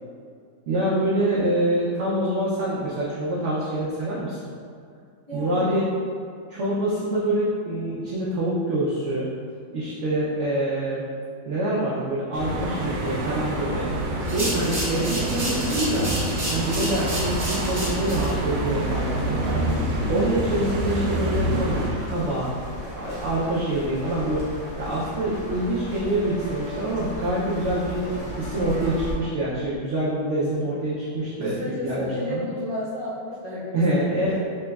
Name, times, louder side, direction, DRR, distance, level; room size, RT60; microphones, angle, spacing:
voice 1, 0.7-4.5 5.3-5.8 6.5-9.3 9.7-11.0 11.5-13.9 14.3-16.1 16.5-19.6 20.1-22.5 22.9-28.0 28.4-32.4 33.7-34.4, right 1 dB, 75° right, -7 dB, 0.6 m, -26 dB
voice 2, 5.3-5.8 19.4-19.9 31.4-34.4, left 1 dB, 45° left, -13 dB, 0.4 m, -32 dB
sound 1, 12.3-21.9, right 1 dB, 90° right, 1.3 m, -27 dB
sound 2, 14.2-18.3, right 1 dB, 35° right, 0.7 m, -31 dB
sound 3, 17.2-29.1, equal, 70° left, 1.5 m, -36 dB
4.4 x 2.9 x 2.3 m, 2.2 s
omnidirectional pair, 1.9 m